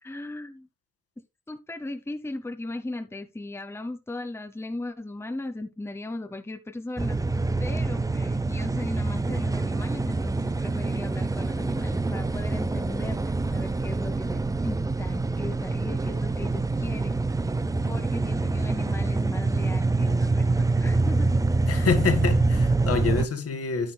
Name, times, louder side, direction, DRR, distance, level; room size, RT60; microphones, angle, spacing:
voice 1, 0.0-0.7 1.5-7.2 7.6-17.2 17.8-21.3, left 2 dB, 10° left, 1.0 m, -37 dB
sound 1, 7.0-23.3, right 3 dB, 10° right, 0.5 m, -26 dB
voice 2, 21.7-23.9, left 5 dB, 50° left, 1.8 m, -26 dB
9.7 x 9.7 x 2.2 m
cardioid pair, 90°, 30 cm